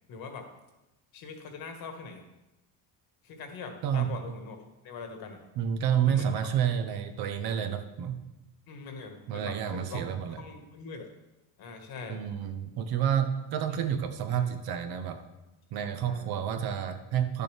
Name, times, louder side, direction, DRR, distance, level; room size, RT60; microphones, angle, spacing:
voice 1, 0.1-0.5 1.1-2.2 3.2-4.6 4.8-5.4 6.0-6.3 8.7-10.0 10.4-11.1 11.6-12.2 13.7-13.8 14.3-14.5 16.1-16.3, left 5 dB, 60° left, 4 dB, 1.6 m, -42 dB
voice 2, 3.8-4.2 5.6-8.2 9.3-10.4 12.1-15.2 15.7-17.4, right 9 dB, 70° right, 8 dB, 1.0 m, -29 dB
10.5 x 6.8 x 3.4 m, 0.98 s
cardioid pair, 115°, 39 cm